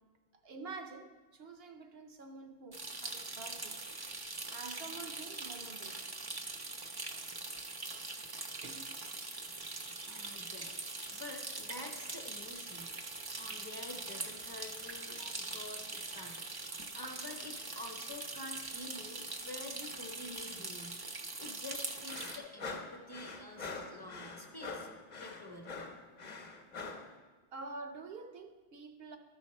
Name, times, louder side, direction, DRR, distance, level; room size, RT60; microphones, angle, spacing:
voice 1, 0.4-3.8 4.5-6.0 8.6-8.9 15.2-15.3 16.7-16.8 27.5-29.2, right 3 dB, 70° right, 0.9 m, -48 dB
sound 1, 2.7-22.4, right 3 dB, 30° right, 0.5 m, -42 dB
voice 2, 10.1-12.9 13.3-16.7 16.9-24.9 25.2-25.8, left 2 dB, 25° left, 0.9 m, -48 dB
sound 2, 22.1-27.1, left 4 dB, 45° left, 0.9 m, -44 dB
13.0 x 5.8 x 4.2 m
omnidirectional pair, 1.1 m